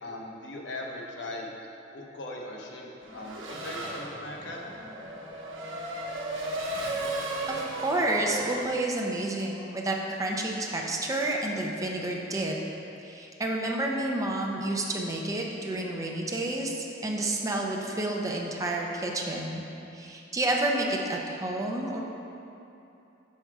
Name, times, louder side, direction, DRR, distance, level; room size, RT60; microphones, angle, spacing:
voice 1, 0.0-1.5 1.9-2.9 3.1-4.6, left 2 dB, 65° left, -1 dB, 0.8 m, -39 dB
Race car auto racing / Accelerating revving vroom, 3.0-8.7, right 1 dB, 85° right, 0.9 m, -35 dB
voice 2, 7.5-12.6 13.0-19.6 19.9-22.0, right 2 dB, 20° right, -1 dB, 0.6 m, -30 dB
5.5 x 4.8 x 4.6 m, 2.8 s
head